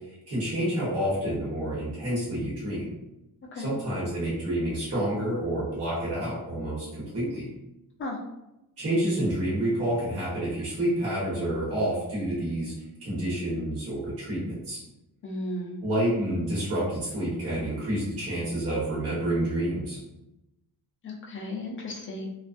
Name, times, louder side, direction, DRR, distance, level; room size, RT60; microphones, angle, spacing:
voice 1, 0.1-2.9 3.5-7.5 8.8-12.7 13.0-14.8 15.8-20.0, right 1 dB, 40° right, -9 dB, 1.1 m, -29 dB
voice 2, 15.2-15.8 21.0-22.3, left 1 dB, 30° left, -2 dB, 0.4 m, -35 dB
2.4 x 2.2 x 2.5 m, 0.93 s
wide cardioid pair, 170°, 39 cm